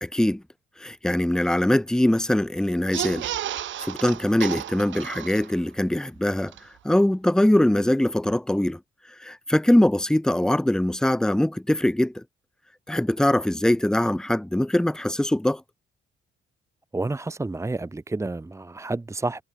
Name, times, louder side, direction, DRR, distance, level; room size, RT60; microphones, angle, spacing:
voice 1, 0.0-0.4 0.8-3.3 3.8-6.5 6.8-8.8 9.2-12.2 12.9-15.6, left 1 dB, 5° left, 0.9 m, -22 dB
sound 1, 2.8-5.8 6.2-6.3 6.5-6.6, right 12 dB, 70° right, 1.7 m, -32 dB
voice 2, 16.9-19.4, right 2 dB, 15° right, 1.2 m, -30 dB
cardioid pair, 90°, 20 cm